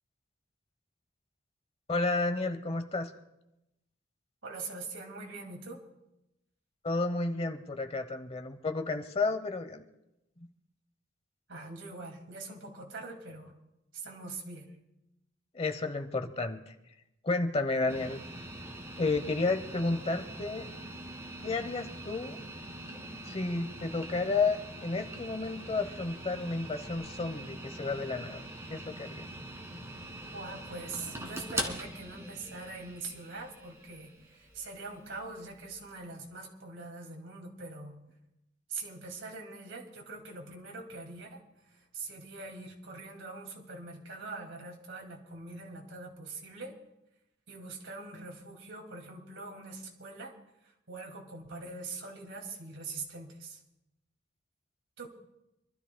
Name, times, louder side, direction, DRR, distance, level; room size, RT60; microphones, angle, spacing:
voice 1, 1.9-3.1 6.8-9.8 15.5-16.7 17.2-18.2 19.0-20.7 21.4-22.4 23.3-28.4 28.7-29.3, left 3 dB, 30° left, 8 dB, 0.9 m, -31 dB
voice 2, 4.4-5.8 11.5-13.6 13.9-14.7 30.3-38.0 38.7-46.8 47.5-50.3 50.6-53.6 55.0-55.1, right 3 dB, 70° right, 2 dB, 2.4 m, -43 dB
sound 1, 17.9-36.0, right 1 dB, 15° right, 1.7 m, -43 dB
27.5 x 13.0 x 2.3 m, 0.89 s
head